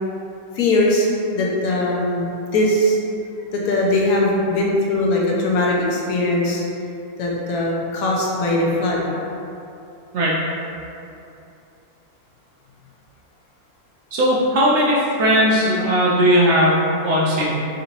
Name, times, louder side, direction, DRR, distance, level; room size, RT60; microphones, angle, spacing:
voice 1, 0.5-1.1 1.3-3.0 3.5-6.6 7.2-9.1, left 1 dB, 90° left, -3 dB, 1.1 m, -20 dB
voice 2, 14.1-17.6, equal, 65° right, -6 dB, 0.8 m, -18 dB
3.8 x 2.6 x 2.8 m, 2.7 s
omnidirectional pair, 1.5 m